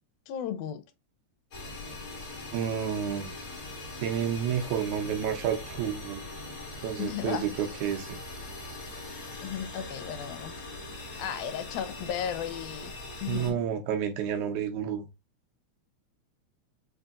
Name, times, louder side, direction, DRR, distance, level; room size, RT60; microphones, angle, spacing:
voice 1, 0.3-0.8 7.0-7.5 9.4-10.5 11.2-12.9 13.2-13.6, left 9 dB, 85° left, 2.0 m, -34 dB
sound 1, 1.5-13.5, left 2 dB, 50° left, 1.1 m, -41 dB
voice 2, 2.5-3.3 4.0-6.2 6.8-8.2 13.3-15.1, right 8 dB, 85° right, 2.2 m, -30 dB
4.9 x 2.7 x 2.4 m
omnidirectional pair, 3.4 m